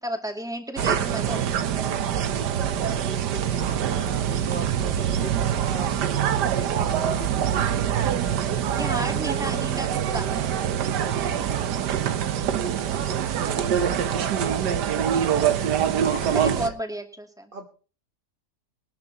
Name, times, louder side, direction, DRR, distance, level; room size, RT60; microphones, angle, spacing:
voice 1, 0.0-1.5 8.7-10.3 13.2-13.7 16.3-17.5, right 1 dB, ahead, 3 dB, 2.5 m, -33 dB
sound 1, 0.8-16.7, right 9 dB, 90° right, 1.6 m, -24 dB
voice 2, 2.3-8.0 12.8-14.6 16.0-16.7 17.5-17.7, right 3 dB, 35° right, 4 dB, 1.4 m, -39 dB
22.0 x 12.5 x 3.0 m, 0.37 s
omnidirectional pair, 1.7 m